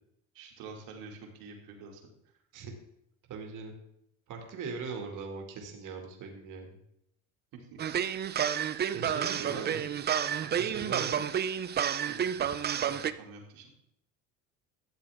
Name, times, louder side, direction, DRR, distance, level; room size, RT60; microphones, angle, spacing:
voice 1, 0.3-2.0 7.7-8.0 9.4-9.9 10.4-10.5 10.8-11.0 12.1-13.7, right 4 dB, 70° right, 1 dB, 2.5 m, -46 dB
voice 2, 3.3-3.7 4.3-6.7 8.9-9.9 10.6-11.2, right 5 dB, 55° right, 2 dB, 2.2 m, -40 dB
sound 1, 7.8-13.1, right 8 dB, 30° right, 0.5 m, -30 dB
12.5 x 7.4 x 3.6 m, 0.77 s
cardioid pair, 105°, 37 cm